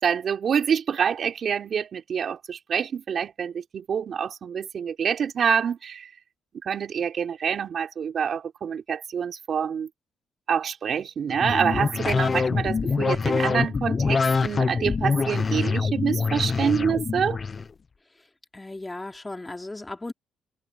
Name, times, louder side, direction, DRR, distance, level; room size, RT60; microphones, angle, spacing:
voice 1, 0.0-6.1 6.6-9.9 10.5-17.4, right 7 dB, 55° right, 4.1 m, -26 dB
sound 1, 11.3-17.6, left 4 dB, 35° left, 1.1 m, -25 dB
voice 2, 18.5-20.1, left 2 dB, 15° left, 3.9 m, -36 dB
cardioid pair, 90°, 0 cm